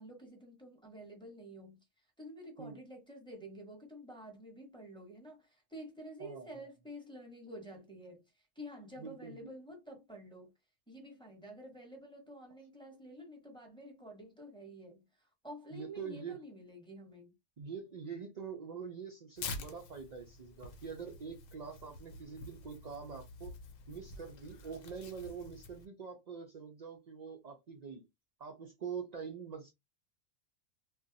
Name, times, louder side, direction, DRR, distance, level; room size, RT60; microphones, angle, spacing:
voice 1, 0.0-1.8 2.2-8.2 8.6-10.5 10.9-15.0 15.4-17.3, equal, 5° left, 0.9 m, -49 dB
voice 2, 9.0-9.5 15.7-16.4 17.6-23.5 23.9-28.0 28.4-29.7, right 6 dB, 65° right, 0.4 m, -45 dB
Tearing, 19.4-25.9, left 3 dB, 75° left, 1.0 m, -48 dB
2.5 x 2.2 x 3.9 m
omnidirectional pair, 1.4 m